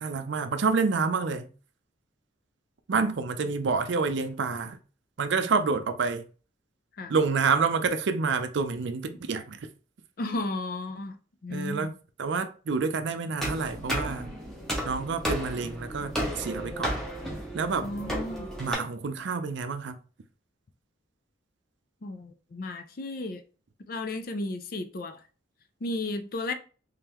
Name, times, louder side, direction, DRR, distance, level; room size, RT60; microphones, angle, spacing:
voice 1, 0.0-1.5 2.9-4.8 5.2-6.2 7.1-9.6 11.5-11.9 12.2-14.3 14.8-17.0 17.5-17.9 18.6-20.0, right 4 dB, 60° right, 0.4 m, -28 dB
voice 2, 10.2-11.2 11.4-12.0 17.8-18.5 22.0-23.4 23.9-25.2 25.8-26.5, left 2 dB, 45° left, 0.4 m, -34 dB
sound 1, 13.4-18.7, equal, ahead, 0.9 m, -33 dB
3.6 x 3.3 x 2.9 m
head